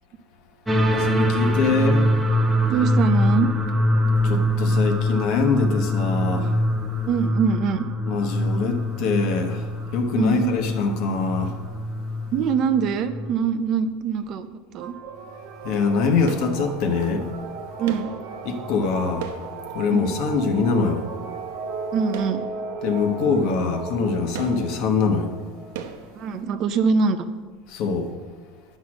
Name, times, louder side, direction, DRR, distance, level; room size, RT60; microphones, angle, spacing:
sound 1, 0.7-13.3, left 1 dB, 5° right, 0.8 m, -23 dB
voice 1, 0.9-2.1 4.2-6.6 8.0-11.6 15.6-17.3 18.4-19.3 19.7-21.1 22.8-25.3 27.7-28.1, left 4 dB, 45° left, 6 dB, 1.1 m, -23 dB
voice 2, 2.7-3.5 7.1-7.9 10.1-10.5 12.3-14.5 14.7-15.0 17.8-18.1 19.9-20.2 21.9-22.4 26.1-27.2, right 6 dB, 35° right, 10 dB, 0.5 m, -23 dB
sound 2, 14.8-26.6, right 4 dB, 60° right, 1.2 m, -36 dB
sound 3, 16.3-17.2 17.9-20.4 22.1-23.1 23.4-23.5 24.3-26.9 27.2-27.3, right 7 dB, 85° right, 0.9 m, -39 dB
10.0 x 6.3 x 6.3 m, 1.5 s
cardioid pair, 175°, 0 cm